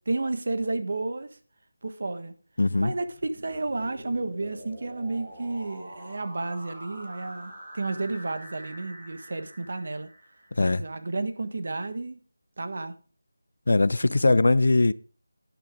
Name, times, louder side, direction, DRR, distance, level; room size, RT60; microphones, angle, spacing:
voice 1, 0.1-1.3 1.8-2.3 2.8-10.1 10.6-12.2 12.6-12.9 14.2-14.3, right 2 dB, 40° right, 1.3 m, -31 dB
voice 2, 2.6-2.9 10.6-10.8 13.7-14.9, left 2 dB, 50° left, 0.4 m, -21 dB
sound 1, 3.1-10.8, right 1 dB, 15° right, 2.9 m, -45 dB
11.5 x 10.5 x 3.6 m
figure-of-eight pair, 180°, 0 cm